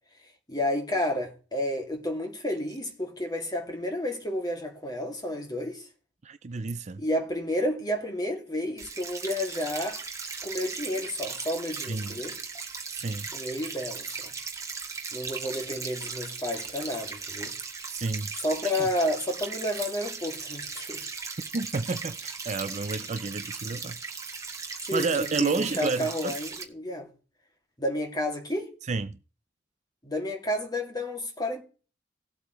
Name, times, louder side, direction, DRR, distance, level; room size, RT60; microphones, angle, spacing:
voice 1, 0.5-5.8 7.0-10.0 10.4-12.4 13.3-14.1 15.1-17.5 18.4-21.0 24.9-27.1 27.8-28.7 30.0-31.6, left 1 dB, 20° left, 2.4 m, -31 dB
voice 2, 6.2-7.0 11.9-12.2 12.9-13.3 17.9-18.3 18.8-18.9 21.5-24.0 24.9-26.3 28.9-29.2, right 3 dB, 40° right, 0.5 m, -30 dB
sound 1, 8.8-26.6, right 5 dB, 15° right, 1.6 m, -37 dB
18.0 x 8.1 x 3.1 m
head